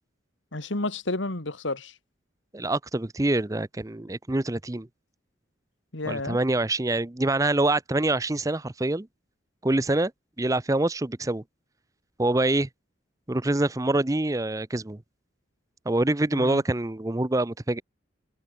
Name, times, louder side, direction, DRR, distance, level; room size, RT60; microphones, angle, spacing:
voice 1, 0.5-1.9 5.9-6.4 16.3-16.6, left 2 dB, 75° left, 2.2 m, -31 dB
voice 2, 2.5-4.9 6.1-9.1 9.6-10.1 10.4-11.4 12.2-12.7 13.3-15.0 15.9-17.8, right 2 dB, 15° right, 0.6 m, -25 dB
head